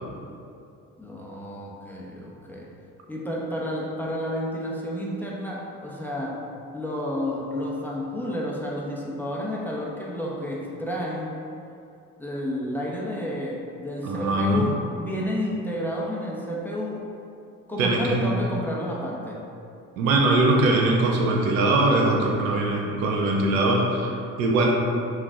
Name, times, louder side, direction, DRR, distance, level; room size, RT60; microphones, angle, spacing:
voice 1, 1.0-2.7 3.1-6.4 6.7-11.3 12.2-17.0 17.7-19.5, equal, 5° left, -5 dB, 1.0 m, -31 dB
voice 2, 14.0-14.7 17.8-18.3 20.0-24.7, right 2 dB, 80° right, 0 dB, 0.8 m, -21 dB
5.9 x 2.5 x 3.7 m, 2.5 s
hypercardioid pair, 55°, 40 cm